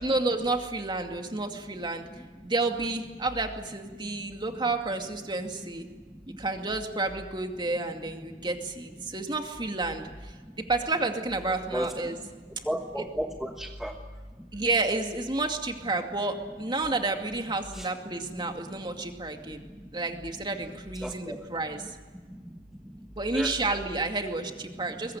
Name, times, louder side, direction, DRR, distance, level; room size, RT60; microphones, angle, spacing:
voice 1, 0.0-2.1 2.4-5.9 6.4-12.2 13.0-13.1 14.5-19.6 19.9-21.8 23.2-25.2, right 2 dB, 25° right, 4 dB, 2.3 m, -30 dB
voice 2, 12.7-13.9 17.7-17.9 21.0-21.4 23.3-23.7, equal, ahead, 2 dB, 1.3 m, -32 dB
22.5 x 21.5 x 9.4 m, 1.4 s
head